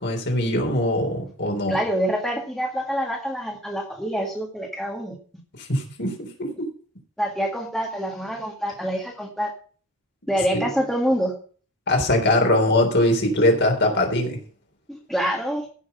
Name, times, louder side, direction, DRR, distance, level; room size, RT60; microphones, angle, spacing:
voice 1, 0.0-1.8 5.6-6.7 10.5-10.6 11.9-14.4, left 1 dB, 50° left, 3 dB, 3.7 m, -21 dB
voice 2, 1.7-5.2 7.2-9.5 10.3-11.4 14.9-15.6, equal, ahead, -1 dB, 1.8 m, -26 dB
15.0 x 6.4 x 5.6 m, 0.42 s
head